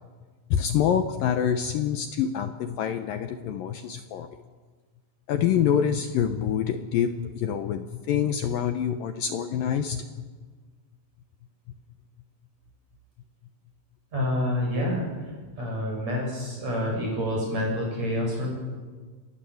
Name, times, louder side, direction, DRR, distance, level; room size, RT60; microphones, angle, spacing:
voice 1, 0.5-4.3 5.3-10.2, left 8 dB, 80° left, 8 dB, 2.0 m, -26 dB
voice 2, 14.1-15.1 15.6-18.5, left 1 dB, 35° right, -1 dB, 8.9 m, -27 dB
28.0 x 19.5 x 7.9 m, 1.5 s
omnidirectional pair, 5.3 m